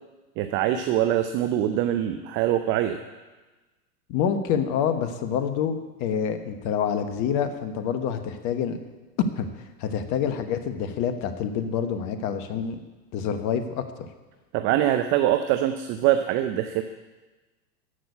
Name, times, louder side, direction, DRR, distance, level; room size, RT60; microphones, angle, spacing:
voice 1, 0.4-3.0 14.5-16.8, right 12 dB, 25° right, 8 dB, 0.5 m, -23 dB
voice 2, 4.1-5.7 6.0-8.8 9.4-12.8 13.1-14.1, left 8 dB, 35° left, 9 dB, 1.2 m, -27 dB
14.0 x 6.1 x 8.2 m, 1.2 s
hypercardioid pair, 105°, 49 cm